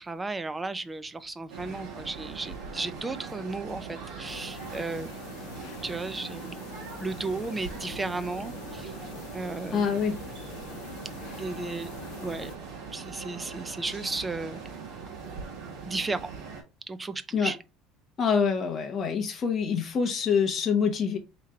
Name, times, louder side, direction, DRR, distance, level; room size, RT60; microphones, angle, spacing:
voice 1, 0.0-5.1 5.8-6.6 7.0-8.9 9.3-9.8 11.4-11.9 12.2-12.5 12.9-14.7 15.9-16.3 16.9-17.6, right 3 dB, 10° right, 0.4 m, -34 dB
sound 1, 1.5-16.6, right 5 dB, 60° right, 1.9 m, -41 dB
sound 2, 4.3-12.6, left 8 dB, 70° left, 0.8 m, -45 dB
voice 2, 9.7-10.2 17.3-17.5 18.2-21.2, left 6 dB, 25° left, 1.0 m, -26 dB
3.7 x 3.2 x 4.2 m
cardioid pair, 165°, 0 cm